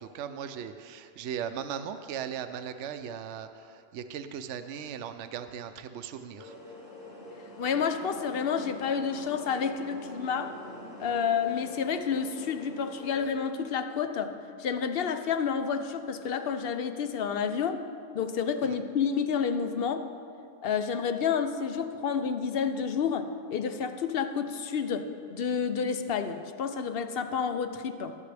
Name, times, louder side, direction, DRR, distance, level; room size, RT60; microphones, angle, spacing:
voice 1, 0.0-6.5 18.6-18.8, right 8 dB, 70° right, 8 dB, 0.8 m, -38 dB
sound 1, 6.4-13.3, left 1 dB, 90° left, 2.4 m, -45 dB
voice 2, 7.6-10.6 11.0-17.8 18.1-20.1 20.6-28.2, left 6 dB, 60° left, 9 dB, 0.7 m, -30 dB
20.0 x 7.4 x 3.4 m, 2.4 s
omnidirectional pair, 1.3 m